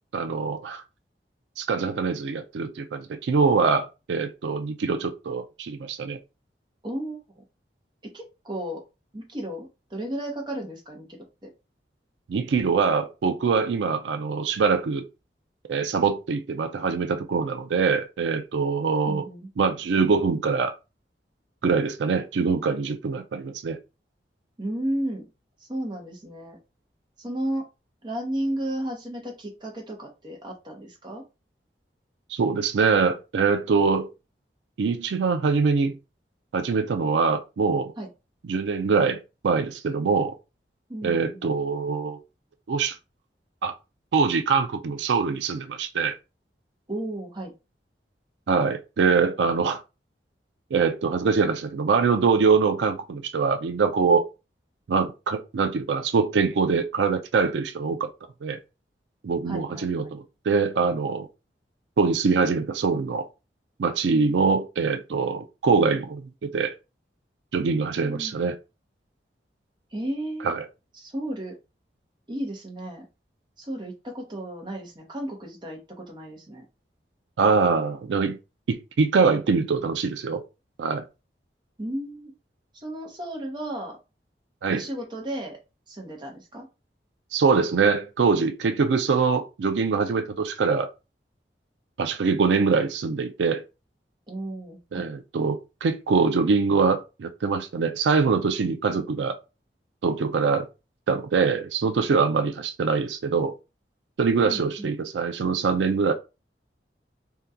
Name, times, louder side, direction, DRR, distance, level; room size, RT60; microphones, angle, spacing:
voice 1, 0.1-0.8 1.6-6.2 12.3-15.0 15.7-19.2 19.6-20.7 21.6-23.8 32.3-34.1 34.8-36.0 36.5-37.9 38.5-40.3 41.0-42.2 42.7-43.0 43.6-43.7 44.1-46.2 48.5-49.8 50.7-54.3 54.9-58.1 58.4-58.6 59.2-61.3 62.0-63.3 63.8-66.7 67.5-68.6 70.4-70.6 77.4-78.4 78.7-80.4 80.8-81.0 84.6-84.8 87.3-90.9 92.0-93.6 94.9-99.4 100.0-100.7 101.1-103.5 104.2-106.1, right 5 dB, 90° right, 0.4 m, -23 dB
voice 2, 6.8-7.4 8.1-8.8 9.1-11.5 19.1-19.5 24.6-25.3 25.6-26.6 27.2-27.7 28.0-31.2 38.0-38.1 40.9-41.4 46.9-47.5 59.5-60.2 68.0-68.4 69.9-70.5 70.9-71.5 72.3-73.1 73.6-76.7 81.8-82.3 82.7-84.0 84.7-85.6 85.9-86.7 94.3-95.1 104.4-104.9, right 1 dB, 25° right, 0.8 m, -33 dB
2.7 x 2.2 x 3.5 m
head